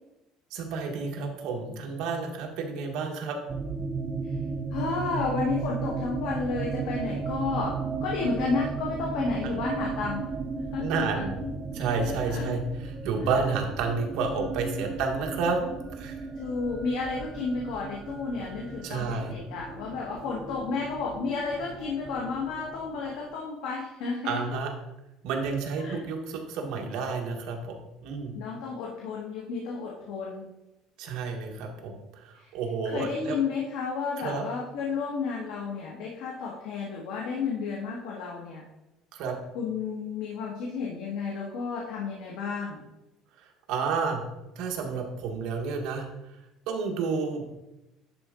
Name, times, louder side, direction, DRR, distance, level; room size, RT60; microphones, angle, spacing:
voice 1, 0.5-3.4 10.8-11.4 11.7-15.6 15.9-16.2 18.8-19.3 24.2-24.7 25.2-27.6 28.0-28.3 31.0-33.4 34.2-34.4 39.1-39.3 43.7-44.2 44.5-46.1 46.7-47.4, right 4 dB, 65° right, 2 dB, 1.4 m, -30 dB
sound 1, 3.5-23.3, right 5 dB, 20° right, 0.5 m, -35 dB
voice 2, 4.7-11.1 12.0-12.5 13.2-13.3 16.3-24.4 25.8-26.1 28.3-30.4 32.4-32.5 32.8-38.6 39.5-42.8, left 4 dB, 80° left, -3 dB, 1.5 m, -32 dB
10.5 x 4.3 x 3.8 m, 0.95 s
cardioid pair, 160°, 0 cm